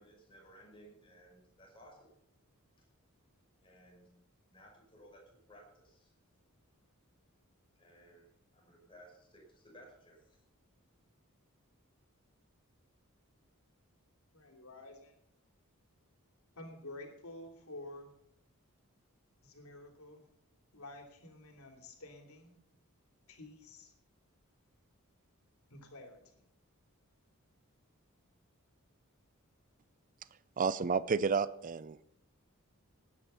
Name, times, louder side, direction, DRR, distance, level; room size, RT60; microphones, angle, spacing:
voice 1, 0.0-2.1 2.8-2.9 3.6-4.1 4.5-6.1 7.8-10.4, equal, 25° left, 5.4 m, -59 dB
voice 2, 14.3-15.1 16.6-18.1 19.4-20.3 20.7-22.5 23.3-23.9 25.7-26.4, left 2 dB, 85° left, 3.1 m, -50 dB
voice 3, 30.6-32.2, right 5 dB, 40° right, 0.4 m, -31 dB
18.5 x 9.7 x 5.7 m
head